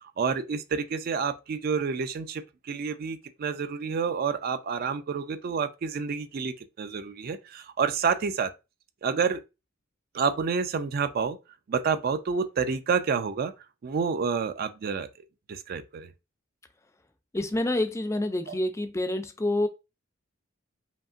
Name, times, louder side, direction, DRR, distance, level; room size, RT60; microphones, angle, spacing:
voice 1, 0.2-2.4 2.7-8.5 9.0-9.4 10.1-11.4 11.7-13.5 13.8-15.1 15.5-16.1 18.5-18.6, right 5 dB, 50° right, 0.4 m, -29 dB
voice 2, 17.3-19.7, left 1 dB, 15° left, 0.4 m, -27 dB
5.2 x 2.8 x 2.4 m
head